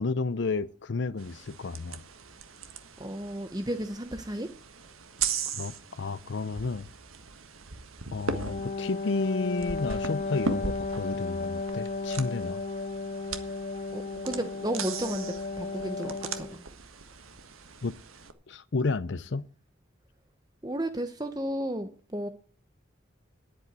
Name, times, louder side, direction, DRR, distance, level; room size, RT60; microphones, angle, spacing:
voice 1, 0.0-2.0 5.6-6.9 8.1-12.6 17.8-18.0 18.5-19.5, left 3 dB, 60° left, 0.6 m, -31 dB
sound 1, 1.2-18.3, right 5 dB, 90° right, 1.5 m, -39 dB
voice 2, 3.0-4.5 13.4-13.5 13.9-16.7 20.6-22.3, right 1 dB, 20° right, 0.9 m, -33 dB
Wind instrument woodwind instrument, 8.4-16.6, left 3 dB, 35° left, 0.8 m, -34 dB
10.5 x 8.8 x 8.1 m
head